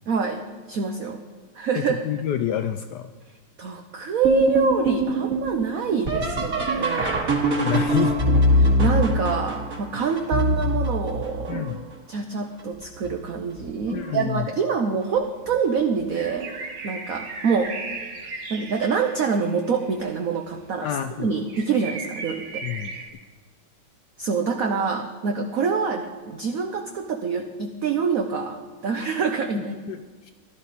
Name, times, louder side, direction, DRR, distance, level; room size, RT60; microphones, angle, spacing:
voice 1, 0.1-0.4 0.7-1.2 1.5-2.0 3.6-7.2 8.6-11.7 12.1-17.7 18.5-20.9 21.2-22.6 24.2-29.8, right 5 dB, 60° right, 4 dB, 0.9 m, -26 dB
voice 2, 1.7-3.1 7.6-8.2 11.5-11.8 13.9-14.5 20.8-21.3 22.6-22.9 29.5-30.3, left 11 dB, 80° left, 9 dB, 0.9 m, -28 dB
sound 1, 4.2-11.9 12.6-13.1 13.6-14.2 15.5-15.6 16.3-16.6 18.8-18.9 21.2-21.3, equal, 40° right, 2.5 m, -23 dB
sound 2, 15.0-15.1 15.9-20.2 20.5-20.6 20.9-21.0 21.2-23.1, right 3 dB, 85° right, 2.5 m, -36 dB
15.5 x 12.0 x 4.1 m, 1.4 s
omnidirectional pair, 2.4 m